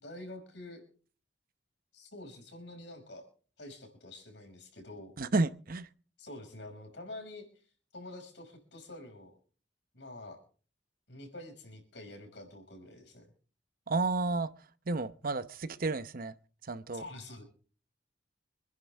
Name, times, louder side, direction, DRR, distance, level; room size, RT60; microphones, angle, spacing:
voice 1, 0.0-0.9 1.9-3.3 3.6-5.1 6.2-7.5 7.9-9.3 9.9-10.4 11.1-13.3 16.9-17.4, left 2 dB, 75° left, 5.6 m, -47 dB
voice 2, 5.2-5.9 13.9-14.5 14.9-16.3 16.6-17.0, right 3 dB, 55° right, 0.8 m, -31 dB
26.5 x 10.5 x 3.4 m
head